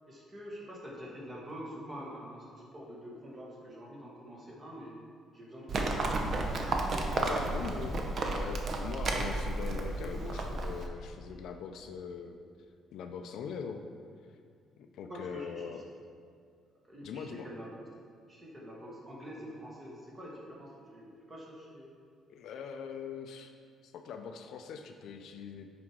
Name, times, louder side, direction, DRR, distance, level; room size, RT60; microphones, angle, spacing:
voice 1, 0.1-5.0 5.3-6.1 15.1-15.8 16.8-17.7 18.3-21.9, equal, 20° right, -4 dB, 1.3 m, -46 dB
Livestock farm animals working animals, 5.7-10.9, right 2 dB, 40° right, 0.6 m, -32 dB
voice 2, 7.1-8.0 8.3-12.4 12.9-13.8 14.8-15.8 17.0-17.5 22.3-23.5 23.8-25.7, left 6 dB, 65° left, 5 dB, 0.4 m, -41 dB
6.0 x 5.1 x 4.6 m, 2.2 s
cardioid pair, 155°, 0 cm